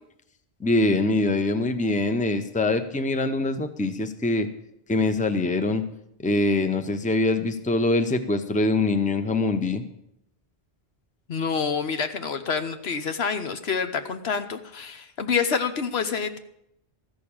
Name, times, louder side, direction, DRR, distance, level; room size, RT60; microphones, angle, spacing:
voice 1, 0.6-4.5 4.9-5.8 6.2-9.8, left 2 dB, 10° left, 8 dB, 0.7 m, -23 dB
voice 2, 11.3-16.4, left 6 dB, 75° left, 8 dB, 1.2 m, -27 dB
14.0 x 6.6 x 8.8 m, 0.78 s
omnidirectional pair, 1.1 m